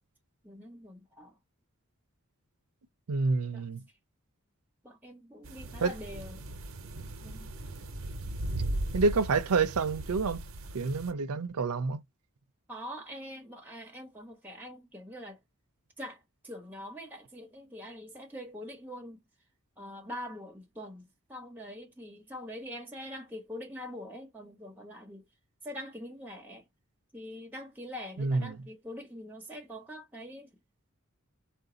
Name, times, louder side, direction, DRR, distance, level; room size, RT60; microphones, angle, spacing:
voice 1, 0.4-1.4 3.5-3.7 4.8-6.5 7.2-7.5 12.7-15.4 16.0-19.2 19.8-25.3 25.6-26.7 27.1-30.5, equal, 10° right, 1.2 m, -44 dB
voice 2, 3.1-3.8 5.8-5.9 8.9-10.4 10.7-12.0 28.2-28.6, right 4 dB, 85° right, 0.5 m, -28 dB
sound 1, 5.4-11.1, right 1 dB, 65° right, 0.9 m, -38 dB
4.5 x 2.6 x 3.8 m
head